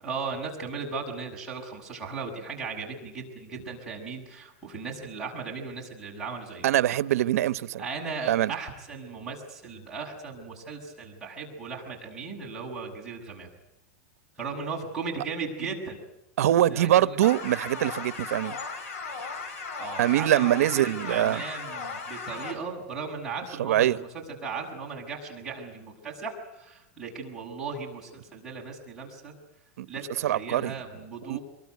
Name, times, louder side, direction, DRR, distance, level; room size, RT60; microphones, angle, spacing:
voice 1, 0.0-6.7 7.8-13.5 14.4-16.0 16.7-17.2 19.8-24.1 24.4-29.3 29.9-31.4, right 4 dB, 5° right, 6.7 m, -37 dB
voice 2, 6.6-7.8 8.3-8.5 16.4-18.6 20.0-21.4 23.6-24.0 29.8-29.9 30.2-30.7 31.3-31.4, right 13 dB, 80° right, 0.9 m, -23 dB
sound 1, 17.2-22.5, left 4 dB, 75° left, 6.3 m, -36 dB
24.5 x 23.0 x 9.5 m
supercardioid pair, 170°, 8 cm